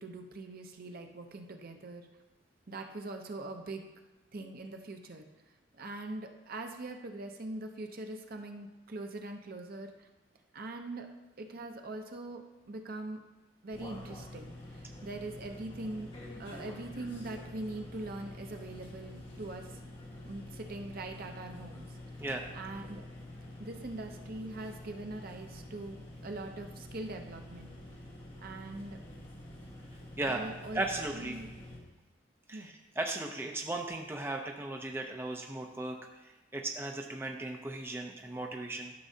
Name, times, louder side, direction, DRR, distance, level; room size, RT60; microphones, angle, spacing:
voice 1, 0.0-2.1 2.7-3.8 4.3-5.3 5.7-10.1 10.5-11.1 11.4-13.2 13.6-16.1 16.4-19.7 20.2-22.0 22.5-23.0 23.6-27.7 28.4-29.0 30.2-30.8 31.1-31.5 32.5-32.7, right 2 dB, 50° right, 4 dB, 0.7 m, -42 dB
sound 1, 13.7-31.8, left 1 dB, 30° left, 1.5 m, -47 dB
voice 2, 30.7-31.4 32.5-38.9, right 2 dB, 10° right, 2 dB, 0.5 m, -37 dB
12.5 x 6.1 x 2.8 m, 1.1 s
head